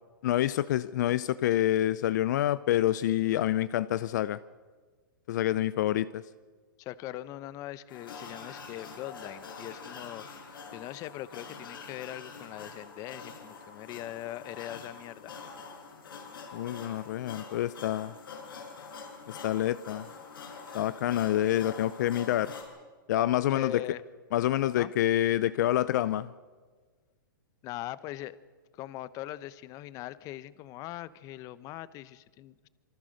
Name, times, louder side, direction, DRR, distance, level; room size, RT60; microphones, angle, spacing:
voice 1, 0.2-4.4 5.3-6.2 16.5-18.1 19.3-20.1 20.7-22.5 23.1-23.8 24.3-26.3, left 13 dB, 55° left, 16 dB, 0.6 m, -27 dB
voice 2, 6.8-15.3 23.5-24.0 24.8-24.9 27.6-28.4 28.7-32.7, left 14 dB, 30° left, 17 dB, 0.9 m, -41 dB
sound 1, 7.9-22.6, left 5 dB, 85° left, 7.2 m, -45 dB
26.5 x 24.0 x 6.6 m, 1.5 s
hypercardioid pair, 140°, 11 cm